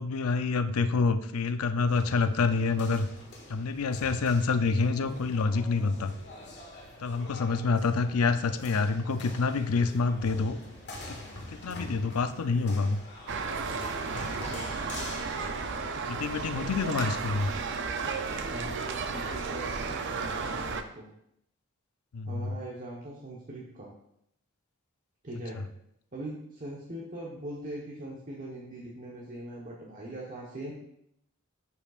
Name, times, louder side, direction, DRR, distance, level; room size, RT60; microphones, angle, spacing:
voice 1, 0.0-3.1 3.5-6.1 7.0-10.6 11.1-11.2 11.5-13.0 16.1-17.5 22.1-22.5 25.5-25.6, left 4 dB, 85° left, 10 dB, 0.5 m, -27 dB
sound 1, 1.9-16.5, left 1 dB, 55° left, 1.8 m, -45 dB
sound 2, 13.3-20.8, right 4 dB, 55° right, 0.5 m, -33 dB
voice 2, 18.4-21.1 22.3-23.9 25.2-25.6 26.1-30.7, right 1 dB, 40° right, -4 dB, 1.1 m, -41 dB
11.0 x 5.4 x 2.5 m, 0.75 s
head